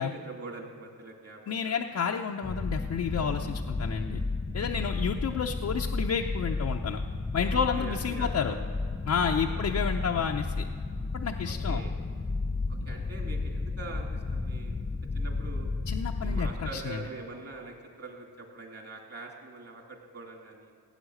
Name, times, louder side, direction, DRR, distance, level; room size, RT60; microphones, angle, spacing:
voice 1, 0.0-1.7 7.5-8.6 9.3-9.7 11.4-11.9 12.7-14.8 15.1-15.7 16.2-20.7, right 3 dB, 40° right, 1 dB, 2.9 m, -43 dB
voice 2, 1.5-4.2 4.5-7.0 7.3-8.5 9.1-10.7 11.1-11.8 15.9-17.0, left 6 dB, 45° left, 1 dB, 0.7 m, -30 dB
sound 1, 2.4-16.8, left 3 dB, 15° left, 0.4 m, -32 dB
16.5 x 9.2 x 6.5 m, 2.1 s
cardioid pair, 90°, 38 cm